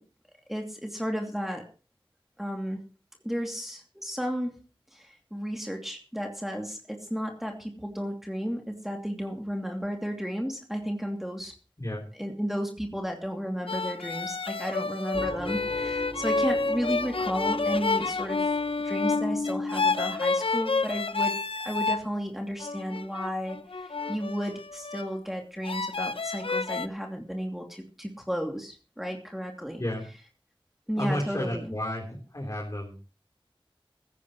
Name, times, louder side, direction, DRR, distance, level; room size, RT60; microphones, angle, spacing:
voice 1, 0.5-1.6 2.4-2.8 3.2-4.5 4.9-11.5 12.2-18.4 18.8-21.3 21.6-29.8 30.9-31.8, equal, 5° right, 1 dB, 2.7 m, -33 dB
sound 1, 13.7-22.1 22.6-25.1 25.6-26.9, left 3 dB, 75° left, 0.7 m, -29 dB
sound 2, 15.1-20.4, equal, 20° right, 4.8 m, -40 dB
voice 2, 31.0-33.0, left 1 dB, 40° left, -1 dB, 3.8 m, -32 dB
16.5 x 15.0 x 3.1 m, 0.36 s
wide cardioid pair, 45°, 9 cm